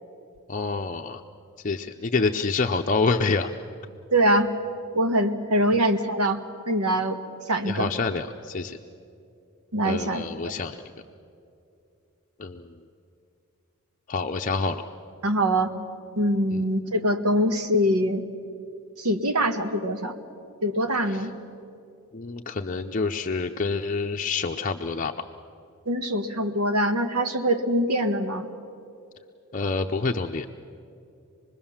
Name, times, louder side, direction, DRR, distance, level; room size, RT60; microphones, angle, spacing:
voice 1, 0.5-1.2 1.6-3.5 7.6-8.8 9.8-10.8 12.4-12.6 14.1-14.8 21.1-21.2 22.1-25.1 29.5-30.5, left 4 dB, 35° left, 3 dB, 0.6 m, -27 dB
voice 2, 4.1-4.5 4.9-6.4 6.7-7.2 7.5-7.9 9.7-10.3 15.2-15.7 16.2-18.2 19.0-20.1 20.6-21.3 25.8-28.5, right 1 dB, 85° right, 7 dB, 1.5 m, -23 dB
26.0 x 21.0 x 7.2 m, 2.6 s
head